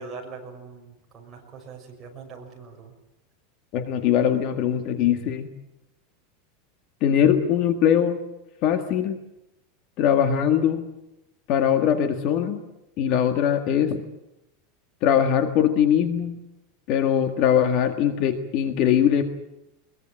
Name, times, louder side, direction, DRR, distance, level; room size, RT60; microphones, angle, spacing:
voice 1, 0.0-2.9, right 4 dB, 15° right, -1 dB, 6.3 m, -42 dB
voice 2, 3.7-5.5 7.0-8.2 8.6-9.2 10.0-10.9 11.5-12.6 13.0-14.0 15.0-16.3 16.9-19.2, left 9 dB, 40° left, 7 dB, 1.7 m, -21 dB
22.5 x 22.0 x 9.0 m, 0.89 s
supercardioid pair, 175°, 0 cm